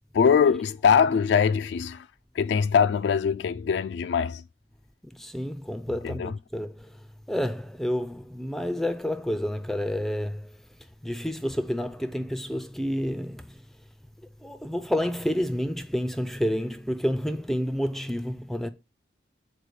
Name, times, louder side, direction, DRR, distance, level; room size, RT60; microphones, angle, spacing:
voice 1, 0.1-2.1 2.4-4.4 6.0-6.3, left 6 dB, 75° left, 0.3 m, -22 dB
voice 2, 5.1-6.9 7.3-10.5 11.0-13.6 14.4-18.7, equal, ahead, 0.4 m, -29 dB
6.7 x 4.4 x 4.7 m
head